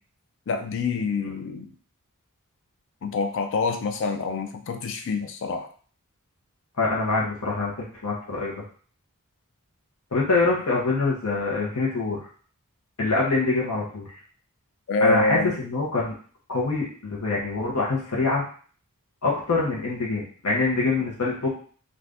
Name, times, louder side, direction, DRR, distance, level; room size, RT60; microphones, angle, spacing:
voice 1, 0.5-1.7 3.0-5.7 14.9-15.5, left 3 dB, 55° left, 6 dB, 0.4 m, -26 dB
voice 2, 6.8-8.5 10.1-12.2 13.0-14.1 15.0-16.1 16.5-18.4 19.2-21.5, left 3 dB, 85° left, -3 dB, 0.9 m, -25 dB
2.6 x 2.5 x 3.4 m, 0.44 s
head